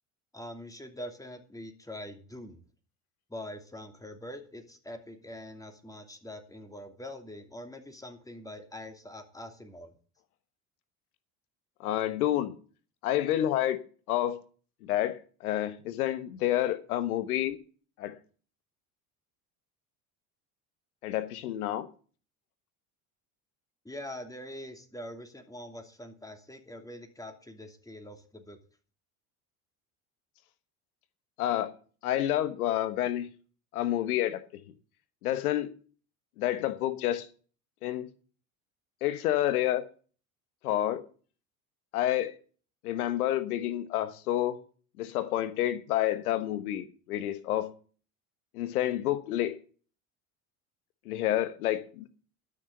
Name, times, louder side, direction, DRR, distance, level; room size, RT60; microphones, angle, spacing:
voice 1, 0.3-2.6 3.3-9.9 23.8-28.6, left 1 dB, 10° left, 2.7 m, -44 dB
voice 2, 11.8-12.5 13.0-13.8 14.1-14.4 14.8-17.6 18.0-18.2 21.0-21.9 31.4-31.7 32.0-33.3 33.7-34.4 35.2-35.7 36.4-37.3 37.8-38.1 39.0-39.8 40.6-41.0 41.9-42.3 42.8-44.6 45.0-47.7 48.5-49.5 51.0-52.1, left 13 dB, 90° left, 1.2 m, -29 dB
12.0 x 6.4 x 7.8 m
hypercardioid pair, 80°, 43 cm